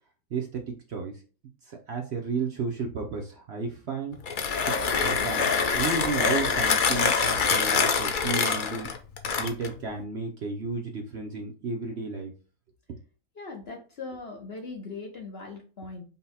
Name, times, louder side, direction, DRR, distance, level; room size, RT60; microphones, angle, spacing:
voice 1, 0.3-1.1 1.7-4.2 4.7-8.9 9.4-12.3 12.9-13.0, right 4 dB, 55° right, 1 dB, 0.8 m, -33 dB
Mechanisms, 4.1-9.8, left 5 dB, 70° left, 0.4 m, -25 dB
voice 2, 13.4-16.0, left 3 dB, 50° left, 2 dB, 0.9 m, -40 dB
5.5 x 2.2 x 4.1 m, 0.36 s
omnidirectional pair, 1.6 m